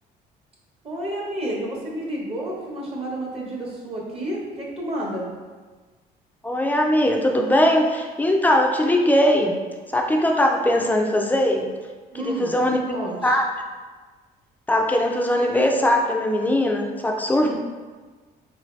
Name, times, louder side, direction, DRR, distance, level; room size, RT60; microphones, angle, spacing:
voice 1, 0.8-5.3 12.1-13.4 17.4-17.6, right 1 dB, 35° right, -4 dB, 0.8 m, -30 dB
voice 2, 6.4-9.6 9.9-11.7 12.1-12.8 13.2-13.7 14.7-17.6, left 1 dB, 10° left, 2 dB, 0.4 m, -20 dB
3.6 x 2.7 x 3.1 m, 1.4 s
cardioid pair, 110°, 17 cm